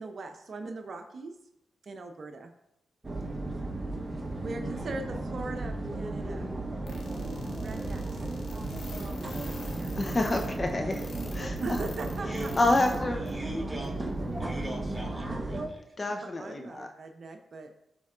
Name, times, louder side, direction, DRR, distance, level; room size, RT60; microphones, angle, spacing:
voice 1, 0.0-1.3 1.8-2.5 4.4-6.5 7.6-8.0 9.0-9.9 11.6-12.5 16.4-17.7, right 3 dB, 60° right, 5 dB, 0.6 m, -40 dB
sound 1, 3.0-15.7, right 2 dB, 30° right, 1.1 m, -34 dB
sound 2, 6.8-13.0 13.3-13.4 13.8-13.9, left 3 dB, 75° left, 1.5 m, -46 dB
voice 2, 10.0-11.0 11.3-11.8 12.6-13.2 16.0-16.9, left 2 dB, 40° left, 4 dB, 0.7 m, -28 dB
voice 3, 12.3-12.6 13.1-14.0 14.4-15.9, equal, 5° right, -1 dB, 2.8 m, -41 dB
12.5 x 4.3 x 2.5 m, 0.82 s
supercardioid pair, 45°, 0 cm